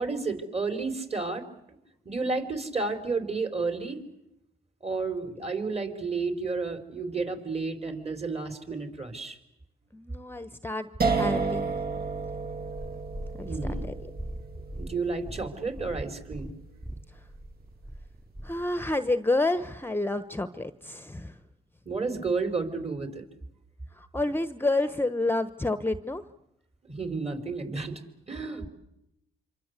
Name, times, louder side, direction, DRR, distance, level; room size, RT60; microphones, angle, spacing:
voice 1, 0.0-1.8 2.0-4.0 4.8-9.4 13.4-13.9 14.7-16.6 21.8-23.2 26.9-28.0 28.3-28.7, right 4 dB, 30° right, 8 dB, 4.8 m, -31 dB
voice 2, 9.9-10.9 11.2-11.7 13.4-13.5 18.4-21.4 23.9-26.2, left 2 dB, 10° left, 12 dB, 1.1 m, -29 dB
sound 1, 11.0-17.9, right 4 dB, 50° right, 1.9 m, -33 dB
Purr, 12.6-19.0 19.7-19.8, right 1 dB, 15° right, 2.7 m, -40 dB
27.0 x 25.5 x 8.3 m, 0.86 s
supercardioid pair, 60°, 20 cm